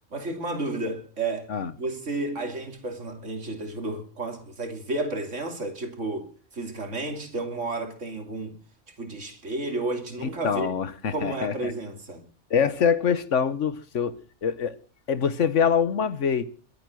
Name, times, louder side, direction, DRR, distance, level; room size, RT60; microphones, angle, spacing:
voice 1, 0.1-1.5 1.8-8.6 9.0-10.7 11.1-12.3, right 2 dB, 85° right, 3.2 m, -32 dB
voice 2, 10.2-11.7 12.5-14.8 15.1-16.4, left 7 dB, 80° left, 1.5 m, -25 dB
23.0 x 8.6 x 6.3 m
omnidirectional pair, 1.2 m